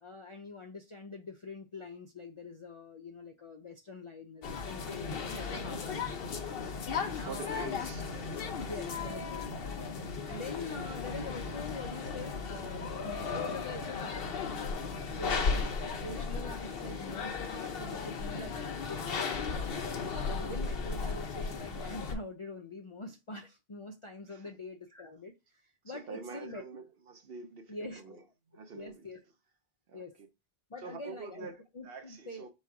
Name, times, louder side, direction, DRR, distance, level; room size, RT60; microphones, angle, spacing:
voice 1, 0.0-6.1 7.0-7.8 8.7-9.5 10.2-14.7 15.1-19.8 20.3-25.3 25.8-26.6 27.7-28.2 28.7-29.2 29.9-30.2 30.7-32.5, left 3 dB, 45° left, 0.4 m, -44 dB
sound 1, 4.4-22.1, left 5 dB, 65° left, 0.9 m, -36 dB
voice 2, 7.0-8.7 9.7-10.0 10.6-10.8 15.1-15.5 20.8-20.9 24.3-24.5 25.9-28.2 28.5-29.1 29.9-30.3 30.8-32.5, right 5 dB, 65° right, 0.9 m, -47 dB
4.2 x 2.3 x 4.6 m
omnidirectional pair, 1.1 m